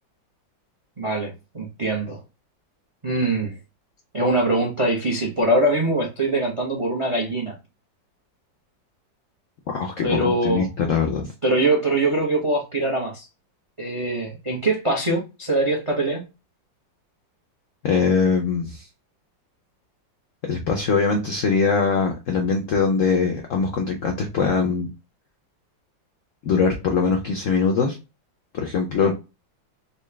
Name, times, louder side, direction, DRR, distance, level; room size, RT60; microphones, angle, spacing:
voice 1, 1.0-2.2 3.0-3.5 4.1-7.5 10.0-10.7 11.4-13.3 13.8-16.2 29.0-29.1, right 2 dB, 55° right, 0 dB, 0.3 m, -23 dB
voice 2, 9.7-11.3 17.8-18.9 20.4-24.9 26.4-28.0 28.5-29.1, left 5 dB, 75° left, 2 dB, 0.7 m, -22 dB
4.2 x 2.2 x 3.2 m, 0.28 s
omnidirectional pair, 2.1 m